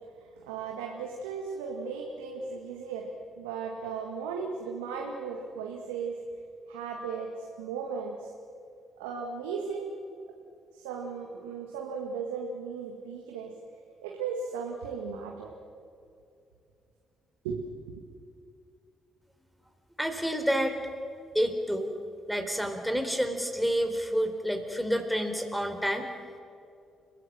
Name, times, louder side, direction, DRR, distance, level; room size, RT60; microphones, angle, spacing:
voice 1, 0.2-3.1 3.4-6.2 6.7-8.3 9.0-9.9 10.7-13.5 14.0-15.5 17.4-18.0, right 5 dB, 80° right, 1 dB, 2.0 m, -36 dB
voice 2, 20.0-20.8 21.3-21.9 22.3-26.1, equal, ahead, 5 dB, 4.0 m, -29 dB
30.0 x 16.0 x 7.5 m, 2.5 s
hypercardioid pair, 45°, 0 cm